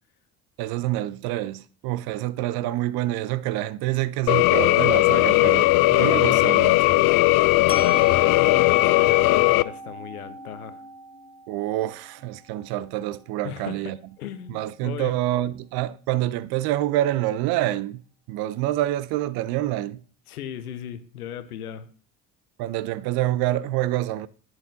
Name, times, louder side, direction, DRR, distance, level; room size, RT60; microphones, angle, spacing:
voice 1, 0.6-7.0 11.5-14.0 14.5-18.0 18.3-20.0 22.6-24.3, right 14 dB, 60° right, 0.6 m, -27 dB
sound 1, 4.3-9.6, left 20 dB, 55° left, 0.5 m, -18 dB
voice 2, 7.7-10.8 13.4-15.2 20.3-21.9, left 10 dB, 85° left, 0.8 m, -37 dB
Musical instrument, 7.7-13.6, right 1 dB, 15° left, 1.4 m, -40 dB
10.5 x 9.0 x 2.7 m
hypercardioid pair, 60°, 43 cm